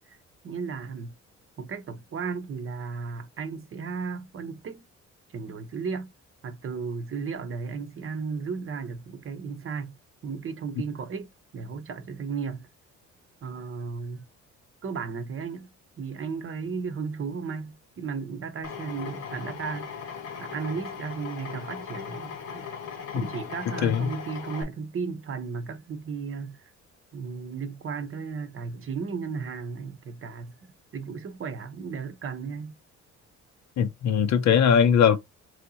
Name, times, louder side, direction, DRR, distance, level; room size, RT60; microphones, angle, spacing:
voice 1, 0.4-1.1 1.6-4.8 5.3-6.1 6.4-10.0 10.2-12.7 13.4-14.2 14.8-20.1 20.4-22.7 23.1-26.7 27.1-30.6 30.9-32.7, right 5 dB, 45° right, 0.8 m, -35 dB
Drill, 18.6-24.6, left 6 dB, 85° left, 1.4 m, -38 dB
voice 2, 23.8-24.1 33.8-35.2, left 7 dB, 65° left, 0.7 m, -20 dB
3.2 x 2.7 x 4.0 m
cardioid pair, 90°, 30 cm